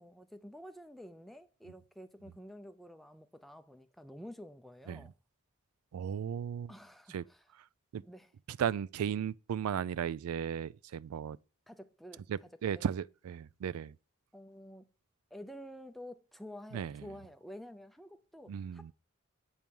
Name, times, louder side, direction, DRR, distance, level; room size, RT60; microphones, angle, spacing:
voice 1, 0.0-5.1 6.7-7.5 8.0-8.3 11.7-12.5 12.7-12.9 14.3-14.9 15.3-18.9, equal, ahead, 0.5 m, -50 dB
voice 2, 5.9-6.7 7.1-7.2 7.9-8.0 8.5-11.4 12.3-13.9 16.7-17.0 18.5-18.9, right 8 dB, 90° right, 0.3 m, -35 dB
8.7 x 4.6 x 5.3 m
head